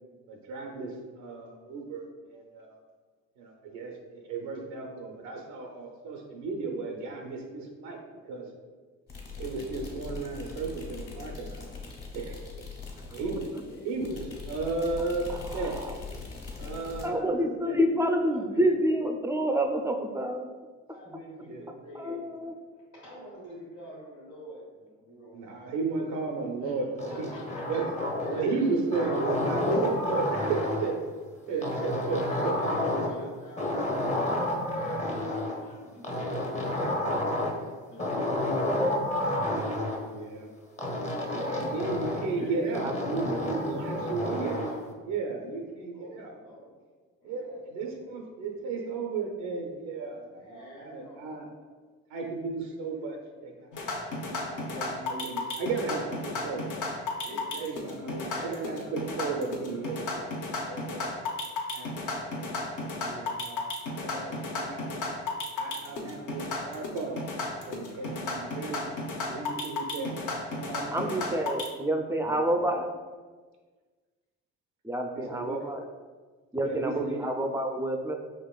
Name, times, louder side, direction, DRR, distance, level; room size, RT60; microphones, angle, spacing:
voice 1, 0.3-2.8 3.4-8.0 8.2-8.5 9.4-11.6 12.1-12.4 13.1-13.4 13.8-14.2 14.5-15.3 15.5-15.8 16.6-17.3 17.6-17.8 21.4-21.6 25.3-27.3 27.7-27.9 28.3-31.0 31.5-32.5 33.1-33.2 40.0-40.5 41.2-44.6 45.1-46.3 47.2-51.5 52.1-53.2 53.4-53.7 54.2-56.7 57.2-57.3 57.6-60.3 60.7-61.1 61.7-65.0 65.5-67.3 67.7-68.9 69.3-70.2 70.5-71.2 75.1-75.7 76.6-77.3, right 4 dB, 90° right, 1 dB, 0.6 m, -34 dB
sound 1, 9.1-17.1, left 4 dB, 45° left, 1.5 m, -41 dB
voice 2, 13.2-14.0 16.4-17.5 17.9-18.6 20.9-22.2 22.9-25.4 26.6-27.8 28.2-28.7 30.8-30.9 31.5-34.1 34.5-38.2 38.8-39.0 39.3-39.5 40.0-40.1 41.9-42.6 44.3-44.9 45.9-46.8 47.2-48.2 50.2-51.3 54.5-55.0 57.2-57.9 58.2-59.2 65.7-66.8 72.2-72.5 75.0-75.3, equal, 90° left, -11 dB, 1.4 m, -47 dB
voice 3, 15.3-16.0 17.0-20.5 21.9-22.5 42.4-43.4 70.9-72.9 74.8-75.8 76.5-78.1, right 1 dB, 10° right, 4 dB, 0.4 m, -28 dB
sound 2, 27.0-28.5 28.9-31.0 31.6-33.3 33.6-35.6 36.0-37.6 38.0-40.0 40.8-42.3 42.7-44.8, left 1 dB, 20° left, 0.7 m, -30 dB
sound 3, 53.7-71.7, left 3 dB, 60° left, 0.9 m, -34 dB
5.1 x 3.0 x 2.3 m, 1.4 s
supercardioid pair, 65°, 35 cm